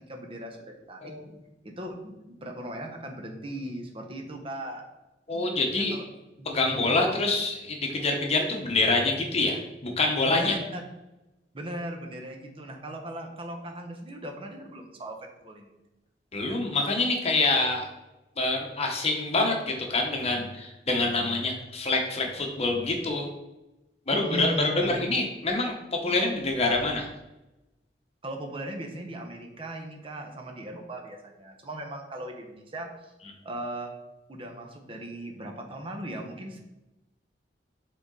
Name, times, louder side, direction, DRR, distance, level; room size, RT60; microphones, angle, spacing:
voice 1, 0.1-1.1 1.6-4.8 5.9-6.0 6.4-6.8 10.3-10.8 11.5-15.2 15.4-15.7 24.1-25.0 28.2-33.1 33.4-33.9 34.3-36.6, right 1 dB, 30° right, 3 dB, 0.9 m, -38 dB
voice 2, 1.0-1.3 5.3-6.0 6.4-10.6 16.3-17.9 18.4-23.3 24.1-27.1, left 2 dB, 35° left, 2 dB, 1.0 m, -26 dB
6.8 x 3.8 x 3.8 m, 0.98 s
head